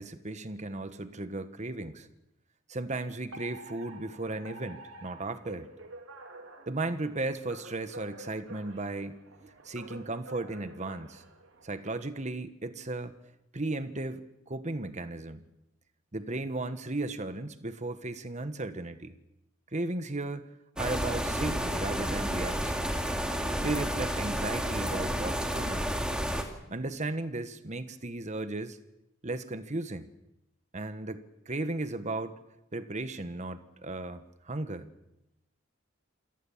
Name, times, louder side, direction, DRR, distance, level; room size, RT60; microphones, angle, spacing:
voice 1, 0.0-2.1 2.7-5.7 6.7-11.2 11.6-13.1 13.5-15.4 16.1-19.1 19.7-20.5 20.8-22.9 23.6-25.8 26.7-28.8 29.2-30.1 30.7-32.4 32.7-34.9, right 2 dB, 35° right, 11 dB, 1.3 m, -35 dB
Alarm, 3.3-11.9, right 2 dB, 85° right, 3.2 m, -49 dB
sound 1, 20.8-26.4, equal, 5° right, 2.5 m, -31 dB
27.0 x 18.5 x 7.3 m, 0.88 s
head